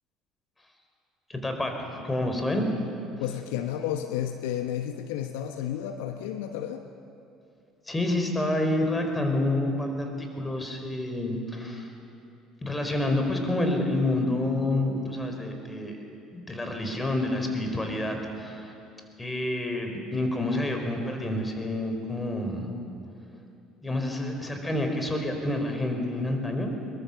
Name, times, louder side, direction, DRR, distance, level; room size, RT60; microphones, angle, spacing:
voice 1, 1.3-2.8 3.2-3.3 7.8-11.9 12.6-16.0 16.3-18.7 19.2-22.7 23.8-26.7, left 1 dB, 15° left, 4 dB, 4.5 m, -28 dB
voice 2, 3.1-6.9, left 10 dB, 70° left, 7 dB, 0.9 m, -32 dB
22.0 x 21.5 x 6.9 m, 2.7 s
hypercardioid pair, 60°, 0 cm